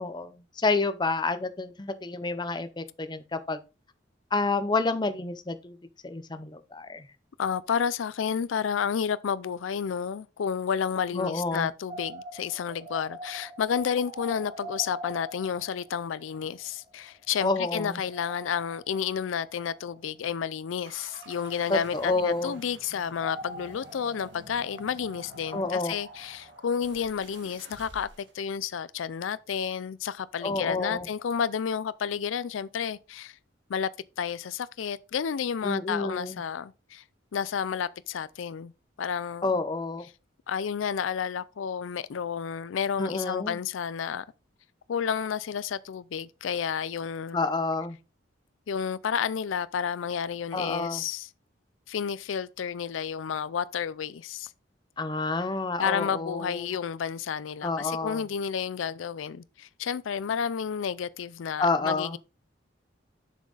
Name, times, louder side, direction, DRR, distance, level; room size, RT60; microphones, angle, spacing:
voice 1, 0.0-3.6 4.3-5.8 6.0-7.1 11.1-11.7 17.4-18.0 21.7-22.5 25.5-25.9 30.4-31.1 35.6-36.4 39.4-40.1 43.0-43.6 47.3-48.0 50.5-51.0 55.0-56.7 57.6-58.2 61.6-62.2, left 3 dB, 25° left, 0.6 m, -29 dB
voice 2, 7.4-33.4 33.7-33.9 34.2-37.0 37.3-38.7 39.0-39.5 40.5-44.2 44.9-47.4 48.7-51.3 51.9-54.5 55.8-62.2, left 7 dB, 80° left, 0.4 m, -31 dB
sound 1, 11.9-17.3 17.5-17.6 18.0-20.3 21.0-22.8 23.0-27.0, right 1 dB, 25° right, 1.3 m, -45 dB
sound 2, 20.8-28.4, right 2 dB, 65° right, 1.6 m, -51 dB
7.2 x 6.2 x 3.9 m
head